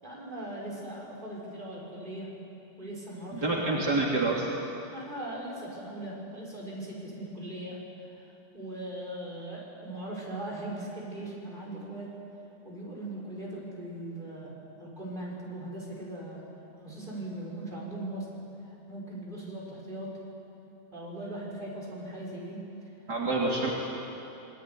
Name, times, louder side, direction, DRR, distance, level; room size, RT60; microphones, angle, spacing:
voice 1, 0.0-2.3 2.8-3.8 4.9-7.8 8.5-12.1 12.6-14.5 14.8-16.4 16.8-18.3 18.9-20.1 20.9-22.6, right 1 dB, 25° right, -4 dB, 6.8 m, -39 dB
voice 2, 3.3-4.5 23.1-23.7, right 2 dB, 70° right, -4 dB, 3.5 m, -27 dB
25.5 x 22.5 x 9.9 m, 2.9 s
omnidirectional pair, 1.8 m